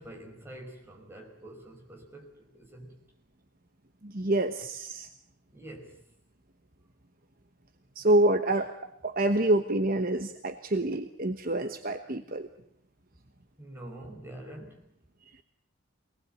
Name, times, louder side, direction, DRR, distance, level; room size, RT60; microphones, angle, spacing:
voice 1, 0.0-3.0 5.5-6.0 13.6-14.9, right 1 dB, 10° right, -1 dB, 5.5 m, -46 dB
voice 2, 4.0-5.1 7.9-8.7 9.0-12.5, right 1 dB, 40° right, 7 dB, 1.1 m, -27 dB
24.0 x 19.0 x 9.1 m, 0.73 s
head